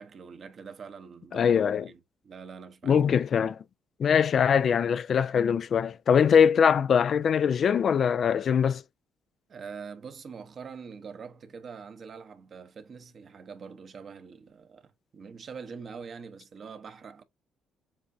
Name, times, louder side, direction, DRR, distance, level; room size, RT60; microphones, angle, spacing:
voice 1, 0.0-1.5 1.8-3.0 9.5-17.2, right 5 dB, 50° right, 1.0 m, -44 dB
voice 2, 1.3-1.9 2.8-3.6 4.0-8.8, left 7 dB, 55° left, 0.4 m, -22 dB
7.2 x 2.5 x 2.7 m
supercardioid pair, 65°, 0 cm